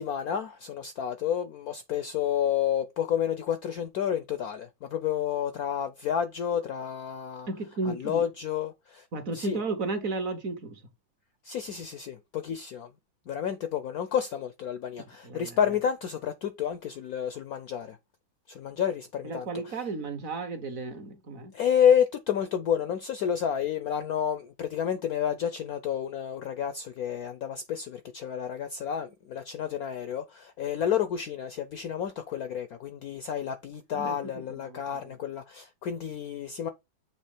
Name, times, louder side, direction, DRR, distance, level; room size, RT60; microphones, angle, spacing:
voice 1, 0.0-7.5 7.9-9.1 9.3-9.6 11.4-12.9 13.3-18.0 18.5-19.8 21.5-36.7, left 9 dB, 70° left, 0.9 m, -30 dB
voice 2, 7.5-8.3 9.1-10.8 15.0-15.6 19.2-21.5 33.9-35.2, right 3 dB, 50° right, 1.2 m, -34 dB
7.3 x 3.1 x 4.9 m
omnidirectional pair, 2.2 m